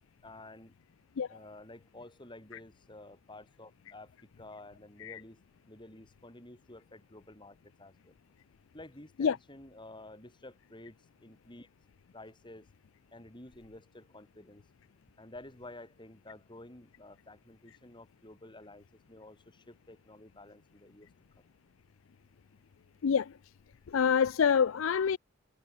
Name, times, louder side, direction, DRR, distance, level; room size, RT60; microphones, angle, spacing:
voice 1, 0.2-0.7 1.3-5.4 5.7-8.1 8.7-11.7 12.1-12.7 13.1-14.6 15.2-21.1 21.3-21.4, left 1 dB, 25° left, 4.5 m, -51 dB
voice 2, 23.0-23.3 23.9-25.2, left 7 dB, 70° left, 0.4 m, -26 dB
head